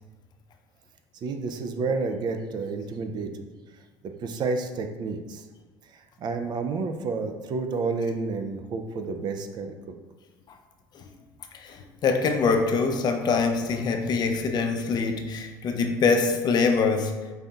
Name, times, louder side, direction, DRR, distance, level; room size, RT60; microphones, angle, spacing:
voice 1, 1.2-3.5 4.0-5.5 5.9-9.8, right 4 dB, 50° right, 6 dB, 0.4 m, -30 dB
voice 2, 12.0-17.1, left 4 dB, 45° left, 5 dB, 0.4 m, -24 dB
5.3 x 2.6 x 2.3 m, 1.3 s
supercardioid pair, 85°, 10 cm